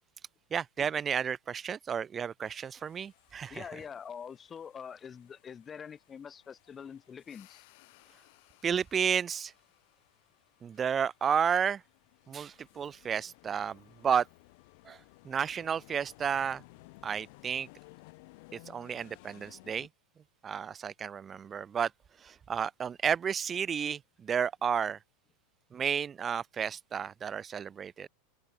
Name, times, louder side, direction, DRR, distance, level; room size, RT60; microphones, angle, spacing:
voice 1, 0.5-3.6 8.6-9.5 10.6-11.8 12.3-14.3 14.9-15.0 15.2-16.6 17.0-17.7 18.7-19.9 20.4-21.9 22.2-25.0 25.7-28.1, right 7 dB, 25° right, 0.4 m, -32 dB
sound 1, 2.4-19.9, left 27 dB, 60° left, 4.0 m, -59 dB
voice 2, 3.5-7.6, left 7 dB, 25° left, 2.0 m, -45 dB
open air
hypercardioid pair, 95°, 0 cm